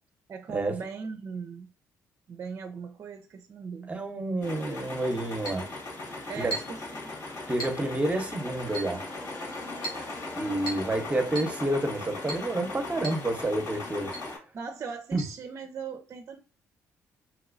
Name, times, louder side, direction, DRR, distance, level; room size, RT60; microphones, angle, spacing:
voice 1, 0.3-1.7 2.3-3.9 6.3-7.1 14.5-16.4, right 5 dB, 50° right, 0.5 m, -39 dB
voice 2, 3.9-5.6 6.4-6.5 7.5-9.0 10.4-14.1 15.1-15.2, right 1 dB, 20° right, 0.8 m, -29 dB
sound 1, 4.4-14.4, left 2 dB, 55° left, 1.7 m, -38 dB
Chink clink, 5.4-5.7 6.5-6.8 7.6-7.8 8.7-9.0 9.8-10.1 10.7-10.9 11.3-11.6 12.3-12.5 13.0-13.2 13.5-13.6 14.1-14.3 15.2-15.3, right 2 dB, 75° left, 1.4 m, -37 dB
2.9 x 2.9 x 2.5 m
supercardioid pair, 65°, 6 cm